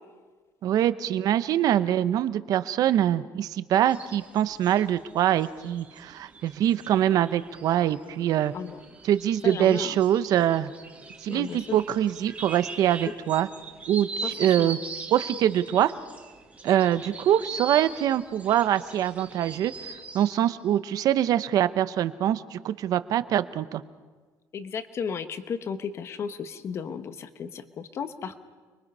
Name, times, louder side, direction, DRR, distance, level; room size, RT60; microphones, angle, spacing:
voice 1, 0.6-8.5 9.0-10.7 11.2-13.5 13.9-14.8 15.1-15.9 16.6-19.7 20.1-23.8, right 11 dB, 50° right, 14 dB, 0.9 m, -24 dB
sound 1, 3.9-20.5, right 4 dB, 20° right, 1.8 m, -41 dB
voice 2, 9.4-10.0 11.3-11.8 14.2-14.8 24.5-28.4, left 6 dB, 35° left, 10 dB, 1.2 m, -34 dB
29.5 x 23.0 x 5.5 m, 1.4 s
cardioid pair, 175°, 8 cm